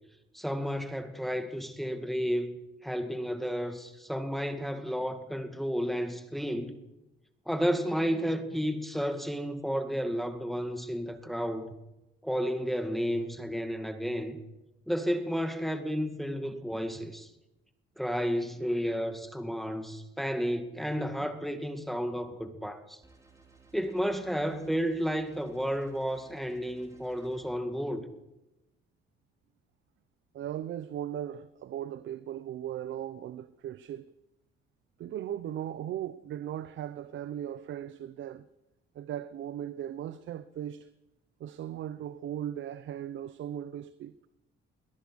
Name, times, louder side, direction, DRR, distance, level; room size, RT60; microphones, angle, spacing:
voice 1, 0.3-2.6 2.8-6.8 7.5-11.7 12.2-14.4 14.9-17.3 18.0-23.0 23.7-28.1, equal, ahead, 2.1 m, -32 dB
sound 1, 23.0-27.4, right 4 dB, 15° right, 4.8 m, -59 dB
voice 2, 30.3-34.1 35.0-38.5 38.9-40.9 41.4-44.1, right 11 dB, 70° right, 0.8 m, -38 dB
22.5 x 18.0 x 6.4 m
cardioid pair, 90°, 20 cm